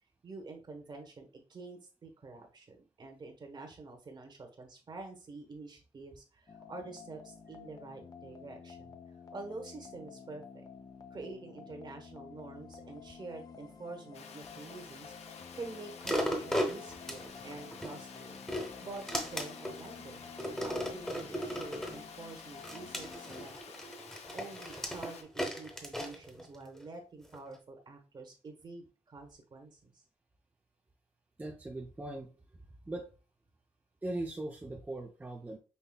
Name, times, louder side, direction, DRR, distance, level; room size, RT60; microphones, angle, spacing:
voice 1, 0.2-9.0 9.3-10.6 11.1-18.4 18.8-20.3 20.5-23.8 24.3-30.0, right 3 dB, 40° right, 4 dB, 1.1 m, -47 dB
sound 1, 6.5-23.5, left 6 dB, 35° left, 0.6 m, -51 dB
Water, 14.1-25.2, left 6 dB, 80° left, 0.6 m, -51 dB
sound 2, 16.0-17.9 18.3-19.8 20.4-22.0 22.6-26.8 27.3-27.4, equal, 5° left, 1.0 m, -36 dB
voice 2, 31.4-32.3 32.8-33.1 34.0-35.6, right 2 dB, 15° right, 1 dB, 0.5 m, -39 dB
5.5 x 2.7 x 2.2 m, 0.33 s
cardioid pair, 95°, 11 cm